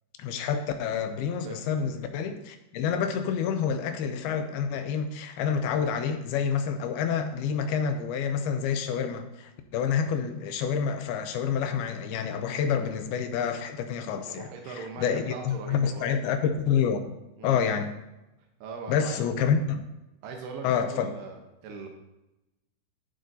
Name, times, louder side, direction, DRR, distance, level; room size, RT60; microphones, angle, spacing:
voice 1, 0.2-14.5 14.8-17.0 17.4-17.9 18.9-19.8 20.6-21.1, left 7 dB, 85° left, 7 dB, 2.5 m, -28 dB
voice 2, 14.3-16.1 17.4-17.6 18.6-19.2 20.2-21.4 21.6-21.9, right 4 dB, 85° right, 2 dB, 3.1 m, -40 dB
16.5 x 7.6 x 2.7 m, 0.96 s
omnidirectional pair, 4.5 m